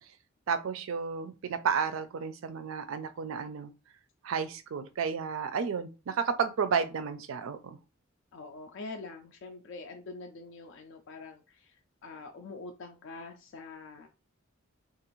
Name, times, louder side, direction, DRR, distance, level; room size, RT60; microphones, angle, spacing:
voice 1, 0.5-3.7 4.2-7.8, right 6 dB, 75° right, 0.4 m, -32 dB
voice 2, 8.3-11.8 12.0-14.1, left 3 dB, 65° left, 0.4 m, -45 dB
2.5 x 2.4 x 3.0 m
head